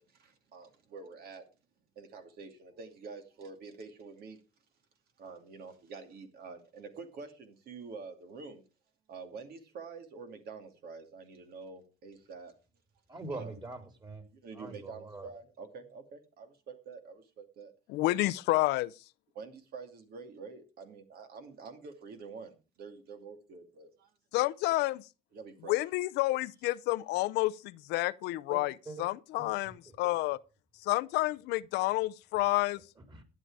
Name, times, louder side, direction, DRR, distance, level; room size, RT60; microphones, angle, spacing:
voice 1, 0.0-1.4 2.0-4.4 5.2-8.6 9.1-12.5 13.3-13.5 14.3-17.7 19.3-24.1 25.3-25.8, right 4 dB, 65° right, 2.6 m, -47 dB
voice 2, 13.1-14.3 14.5-15.3 28.5-29.1 29.4-29.9 33.0-33.2, right 2 dB, 25° right, 3.7 m, -44 dB
voice 3, 17.9-18.9 24.3-25.0 25.7-28.7 29.0-30.4 30.8-32.8, left 18 dB, 85° left, 0.6 m, -29 dB
12.5 x 9.6 x 4.9 m
cardioid pair, 110°, 17 cm